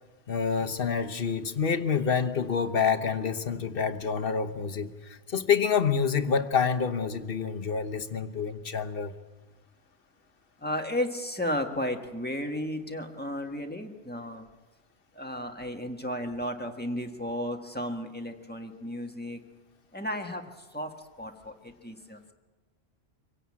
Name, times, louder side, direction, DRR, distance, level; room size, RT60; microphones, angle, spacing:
voice 1, 0.3-9.1, left 6 dB, 60° left, 8 dB, 1.2 m, -27 dB
voice 2, 10.6-14.5 15.1-19.4 19.9-22.3, left 1 dB, 10° left, 3 dB, 1.6 m, -34 dB
25.0 x 17.0 x 8.6 m, 1.3 s
omnidirectional pair, 1.1 m